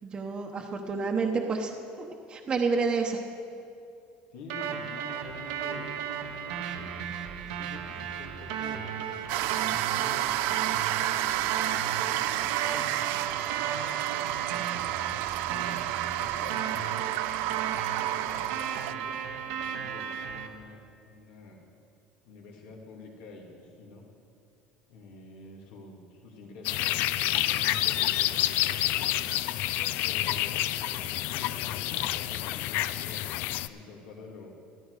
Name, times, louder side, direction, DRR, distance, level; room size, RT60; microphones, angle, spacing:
voice 1, 0.0-3.2, right 4 dB, 25° right, 2 dB, 0.9 m, -29 dB
voice 2, 4.3-5.9 6.1-6.9 7.4-14.7 15.4-17.2 17.5-19.2 19.5-20.8 21.1-21.6 22.2-24.0 24.9-29.3 30.0-34.6, left 3 dB, 80° left, -1 dB, 2.6 m, -48 dB
sound 1, 4.5-20.5, right 8 dB, 90° right, 1.2 m, -35 dB
sound 2, 9.3-18.9, right 14 dB, 70° right, 0.4 m, -30 dB
sound 3, 26.6-33.7, left 14 dB, 65° left, 0.4 m, -28 dB
14.0 x 12.0 x 4.9 m, 2.6 s
cardioid pair, 135°, 3 cm